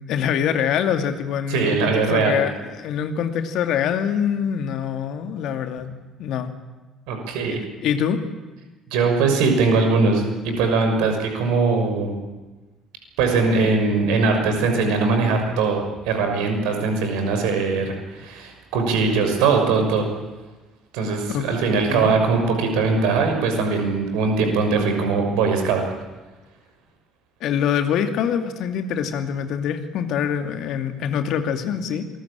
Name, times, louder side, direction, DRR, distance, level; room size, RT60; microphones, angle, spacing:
voice 1, 0.1-5.9 6.2-6.5 7.4-8.2 21.3-21.5 21.9-22.1 27.4-32.2, left 8 dB, 60° left, 7 dB, 2.4 m, -24 dB
voice 2, 1.5-2.4 7.1-7.6 8.9-12.2 13.2-15.8 16.1-20.1 20.9-25.8, right 4 dB, 65° right, 5 dB, 6.2 m, -21 dB
27.0 x 21.0 x 8.9 m, 1.2 s
figure-of-eight pair, 50°, 0 cm